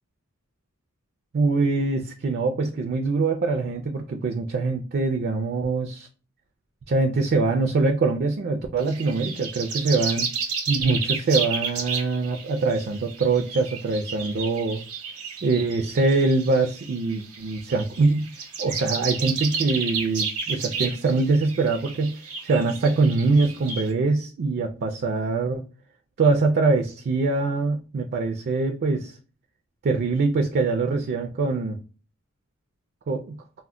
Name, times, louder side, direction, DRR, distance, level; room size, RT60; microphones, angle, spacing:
voice 1, 1.3-6.1 6.9-10.3 10.7-14.8 15.4-18.3 18.6-22.2 22.4-25.6 26.2-29.1 29.8-31.8 33.1-33.4, right 3 dB, 45° right, 4 dB, 0.3 m, -23 dB
sound 1, 8.8-23.9, right 5 dB, 85° right, 0.8 m, -32 dB
2.1 x 2.1 x 3.5 m, 0.35 s
head